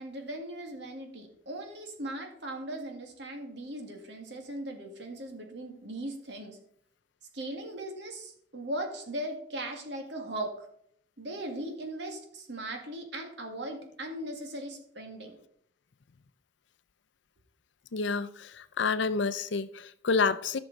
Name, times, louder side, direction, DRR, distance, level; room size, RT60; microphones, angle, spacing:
voice 1, 0.0-6.6 7.3-10.7 11.2-15.3, right 1 dB, 65° right, 2.0 m, -38 dB
voice 2, 17.9-20.6, left 4 dB, 75° left, 0.5 m, -29 dB
14.5 x 6.2 x 4.0 m
head